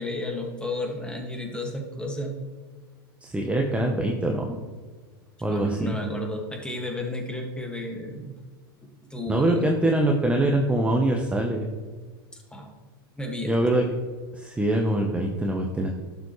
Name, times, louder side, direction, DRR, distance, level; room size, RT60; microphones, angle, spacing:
voice 1, 0.0-2.4 5.5-8.3 8.8-9.7 12.5-12.7 13.2-13.6, left 1 dB, 5° left, 1 dB, 2.0 m, -32 dB
voice 2, 3.2-4.5 5.4-6.0 9.3-11.7 13.5-13.8 14.3-15.9, right 1 dB, 10° right, 1 dB, 1.0 m, -23 dB
11.5 x 7.2 x 3.2 m, 1.5 s
hypercardioid pair, 100°, 13 cm